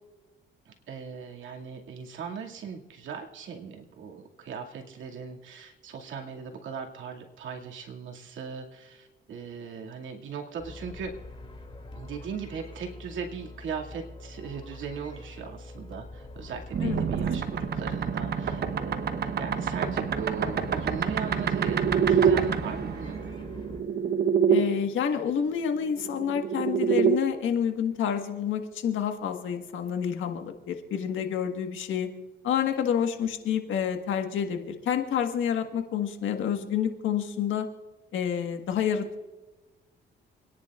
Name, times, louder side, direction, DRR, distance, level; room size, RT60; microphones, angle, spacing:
voice 1, 0.7-11.1 11.9-23.2, right 6 dB, 75° right, 1 dB, 2.3 m, -38 dB
sound 1, 10.6-23.8, left 2 dB, 25° left, 2.6 m, -44 dB
sound 2, 16.7-24.6 25.9-27.2, right 7 dB, 55° right, 1.0 m, -26 dB
voice 2, 24.5-32.1 32.4-37.7 38.1-39.2, left 8 dB, 75° left, 5 dB, 1.6 m, -28 dB
28.0 x 10.5 x 2.5 m, 1.2 s
cardioid pair, 90°, 20 cm